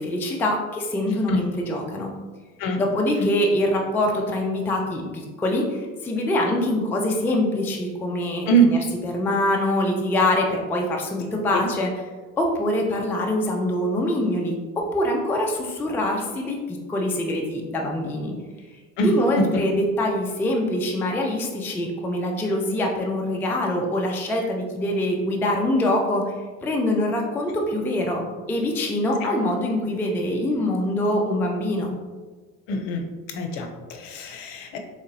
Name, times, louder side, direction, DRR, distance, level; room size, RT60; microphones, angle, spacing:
voice 1, 0.0-2.1 2.8-8.8 9.0-11.9 12.4-18.3 19.0-26.3 26.6-28.2 28.5-31.9, left 1 dB, 5° left, 0 dB, 0.3 m, -24 dB
voice 2, 1.1-1.4 2.6-2.8 8.5-8.7 11.5-11.7 19.0-19.4 29.2-29.3 32.7-33.1 33.3-34.8, right 3 dB, 60° left, 4 dB, 0.7 m, -23 dB
3.7 x 3.4 x 2.6 m, 1.3 s
hypercardioid pair, 65°, 43 cm